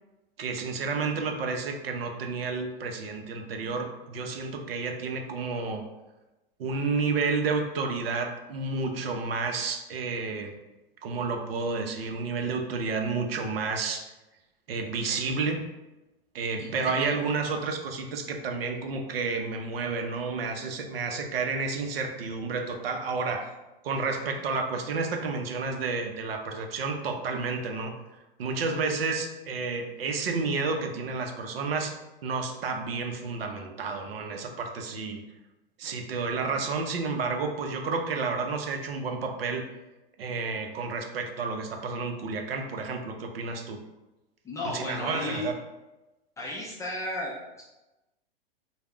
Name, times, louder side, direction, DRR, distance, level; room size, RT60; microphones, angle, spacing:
voice 1, 0.4-5.9 6.6-10.5 11.0-14.1 14.7-15.7 16.3-23.5 23.8-27.9 28.4-32.0 32.2-35.2 35.8-39.7 40.2-43.8 44.6-45.5, right 4 dB, 80° right, 4 dB, 0.5 m, -30 dB
voice 2, 16.6-16.9 44.4-45.5 46.4-47.6, left 2 dB, 10° left, -5 dB, 0.3 m, -34 dB
2.3 x 2.1 x 3.4 m, 1.0 s
hypercardioid pair, 115°, 29 cm